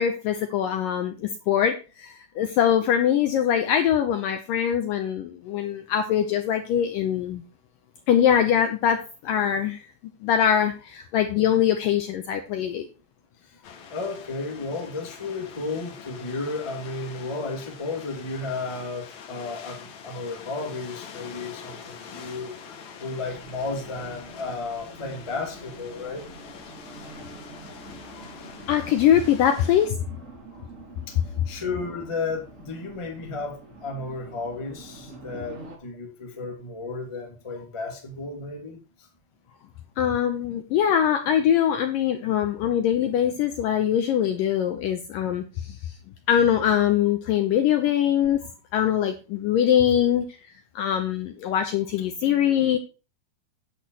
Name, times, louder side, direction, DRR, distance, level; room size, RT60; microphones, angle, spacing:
voice 1, 0.0-7.4 8.1-9.8 10.2-12.9 28.2-28.3 28.7-30.0 40.0-46.0 46.3-48.5 48.7-50.3 50.8-52.8, left 9 dB, 75° left, 6 dB, 2.1 m, -23 dB
sound 1, 13.6-29.9, left 6 dB, 60° left, 2.2 m, -44 dB
voice 2, 13.9-26.3 31.1-39.1, left 3 dB, 15° left, 1 dB, 1.1 m, -33 dB
Race car auto racing, 23.2-35.8, right 2 dB, 30° right, 1.5 m, -46 dB
10.5 x 4.4 x 7.6 m, 0.32 s
omnidirectional pair, 4.8 m